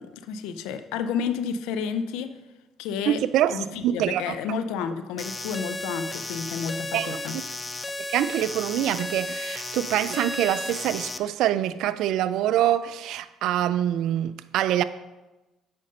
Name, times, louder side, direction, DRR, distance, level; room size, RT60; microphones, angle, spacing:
voice 1, 0.0-2.4 2.8-3.2 3.5-7.3, left 6 dB, 80° left, 0.5 m, -31 dB
voice 2, 3.1-4.3 6.9-7.2 8.1-14.8, right 12 dB, 75° right, 0.4 m, -25 dB
sound 1, 5.2-11.2, left 2 dB, 20° left, 0.6 m, -34 dB
7.6 x 5.2 x 5.3 m
supercardioid pair, 70°, 0 cm